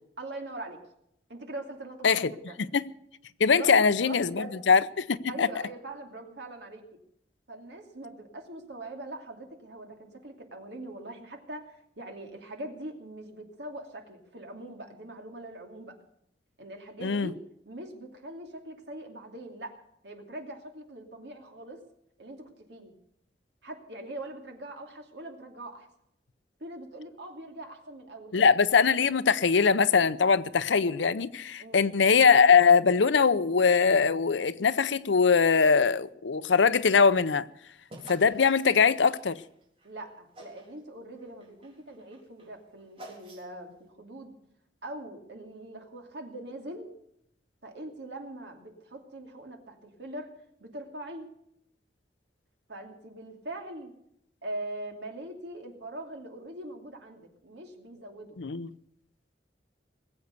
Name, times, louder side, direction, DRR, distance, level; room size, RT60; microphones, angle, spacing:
voice 1, 0.2-0.8 1.3-2.6 3.6-4.6 5.3-6.8 7.5-16.0 16.6-17.3 17.7-19.8 20.0-21.8 22.2-22.9 23.6-25.9 26.6-28.4 31.6-31.8 39.8-44.3 44.8-46.9 47.6-50.3 50.6-51.3 52.7-53.9 54.4-58.4, right 1 dB, 70° right, 2.7 m, -42 dB
voice 2, 3.4-4.3 4.7-5.5 17.0-17.3 28.3-37.4 38.1-39.4 58.4-58.7, left 5 dB, 90° left, 0.7 m, -22 dB
sound 1, 37.9-39.9 40.3-40.8 41.1-43.7, right 1 dB, 30° right, 3.9 m, -50 dB
20.0 x 8.1 x 8.2 m
head